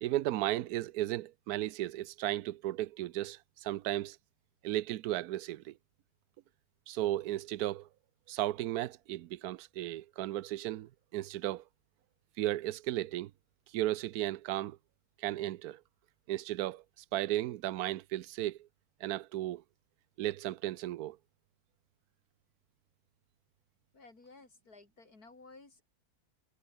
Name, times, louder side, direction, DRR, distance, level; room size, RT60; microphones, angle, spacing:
voice 1, 0.0-4.2 4.6-5.8 6.9-7.9 8.3-11.6 12.4-13.3 13.7-14.8 15.2-15.8 16.3-18.7 19.0-19.6 20.2-21.2, right 14 dB, 80° right, 1.2 m, -35 dB
voice 2, 23.9-25.8, left 3 dB, 80° left, 4.5 m, -55 dB
omnidirectional pair, 1.6 m